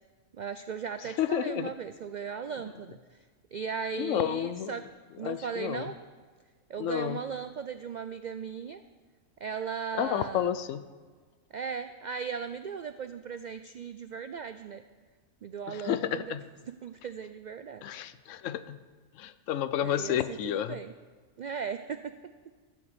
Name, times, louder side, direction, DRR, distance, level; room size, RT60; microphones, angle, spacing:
voice 1, 0.4-3.0 3.5-4.9 5.2-6.0 6.7-8.8 9.4-10.5 11.5-14.8 15.4-16.4 16.8-17.8 19.8-20.9 21.4-22.2, right 6 dB, 80° right, 10 dB, 0.4 m, -37 dB
voice 2, 1.0-1.7 3.9-4.7 5.2-5.9 6.8-7.2 10.0-10.8 15.7-16.4 17.8-18.8 19.2-20.8, left 10 dB, 80° left, 13 dB, 0.9 m, -31 dB
13.5 x 5.8 x 8.2 m, 1.5 s
omnidirectional pair, 1.3 m